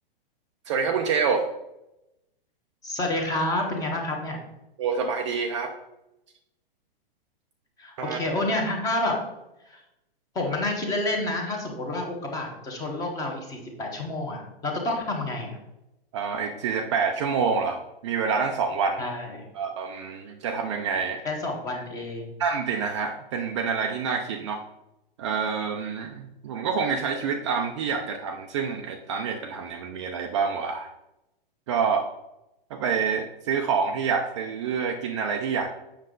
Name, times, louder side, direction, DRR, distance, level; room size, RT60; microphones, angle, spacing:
voice 1, 0.7-1.4 4.8-5.7 8.0-8.2 16.1-19.0 19.5-21.2 22.4-24.6 25.2-30.9 31.7-32.0 32.7-35.8, right 5 dB, 30° right, 4 dB, 0.5 m, -27 dB
voice 2, 2.8-4.4 7.8-9.3 9.7-9.8 10.3-15.6 19.0-19.5 21.2-22.3, left 2 dB, 10° left, 1 dB, 1.2 m, -29 dB
7.6 x 6.3 x 3.8 m, 0.91 s
hypercardioid pair, 160°, 29 cm